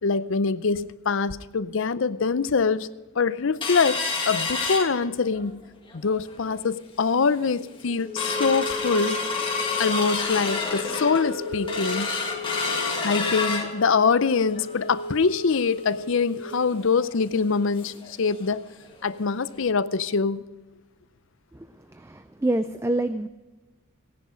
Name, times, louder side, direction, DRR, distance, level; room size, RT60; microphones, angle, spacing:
voice 1, 0.0-2.9 3.2-5.6 5.9-9.2 9.8-12.1 13.0-18.6 19.0-20.4, left 5 dB, 60° left, 15 dB, 0.5 m, -24 dB
sound 1, 3.6-5.5 5.9-6.0 6.3-6.7 7.2-7.3 7.6-18.1 18.4-18.5 18.9-19.1 19.6-19.7, left 3 dB, 25° left, 1.7 m, -29 dB
voice 2, 21.9-23.3, right 1 dB, 10° right, 10 dB, 0.3 m, -27 dB
17.5 x 10.5 x 5.0 m, 1.2 s
head